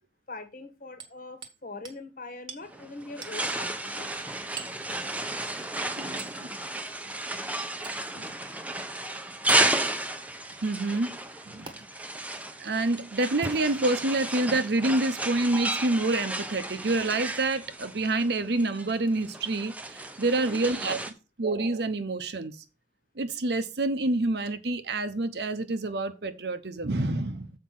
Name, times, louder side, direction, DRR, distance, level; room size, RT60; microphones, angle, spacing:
voice 1, 0.3-4.1 20.4-20.7, left 2 dB, 45° left, 1.4 m, -42 dB
Hammer, 1.0-1.6 1.9-2.0 2.5-2.7 3.2-3.4 4.6-4.8 6.2-6.4 7.8-8.1 9.5-9.7 11.7-11.8 13.3-14.1 14.8-14.9 16.2-16.4 17.3-17.5 19.0-19.1, right 4 dB, 25° right, 1.2 m, -42 dB
sound 1, 2.6-21.1, right 2 dB, 10° right, 0.7 m, -33 dB
voice 2, 6.0-6.5 8.2-8.3 10.6-11.2 11.5-11.8 12.6-21.0 21.4-22.6 23.2-27.5, right 2 dB, 65° right, 0.8 m, -27 dB
7.5 x 5.0 x 5.9 m
head